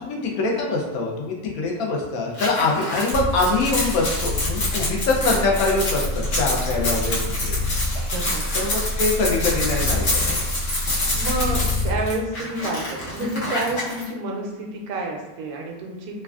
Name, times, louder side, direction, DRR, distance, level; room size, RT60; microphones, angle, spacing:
voice 1, 0.0-6.1 6.4-7.6 8.5-10.4, left 3 dB, 80° left, -1 dB, 1.1 m, -24 dB
sound 1, 2.3-14.0, left 1 dB, 55° left, 1.1 m, -27 dB
sound 2, 3.1-12.0, left 2 dB, 65° right, 0.8 m, -27 dB
voice 2, 8.1-8.5 11.1-16.2, right 2 dB, 90° right, 1 dB, 1.1 m, -29 dB
3.2 x 2.3 x 2.3 m, 1.1 s
omnidirectional pair, 1.5 m